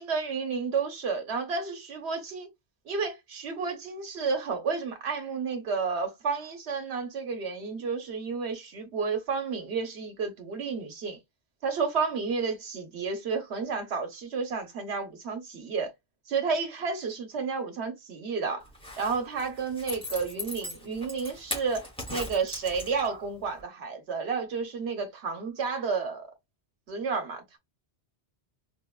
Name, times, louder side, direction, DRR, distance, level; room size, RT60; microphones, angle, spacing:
voice 1, 0.0-2.5 2.9-11.2 11.6-15.9 16.3-18.6 19.0-26.3 26.9-27.6, right 5 dB, 75° right, 1.1 m, -31 dB
Zipper (clothing), 18.7-23.3 23.6-23.7, left 1 dB, 5° left, 1.0 m, -39 dB
4.8 x 2.2 x 2.3 m
omnidirectional pair, 1.1 m